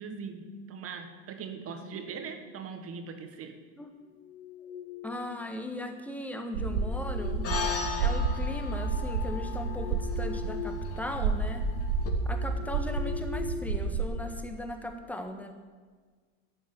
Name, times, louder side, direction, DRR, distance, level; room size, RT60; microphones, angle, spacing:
voice 1, 0.0-3.6, right 5 dB, 35° right, 7 dB, 1.6 m, -40 dB
sound 1, 4.0-5.5 6.5-8.6 9.1-11.0 11.3-11.5 12.0-14.3, left 8 dB, 85° left, 4.4 m, -43 dB
voice 2, 5.0-7.6 8.0-11.7 12.2-15.5, left 1 dB, 5° left, 5 dB, 1.4 m, -38 dB
sound 2, 6.5-14.1, right 4 dB, 80° right, 1.4 m, -31 dB
sound 3, 7.4-12.1, left 5 dB, 40° left, 2.1 m, -38 dB
12.0 x 7.2 x 8.8 m, 1.5 s
supercardioid pair, 115°, 38 cm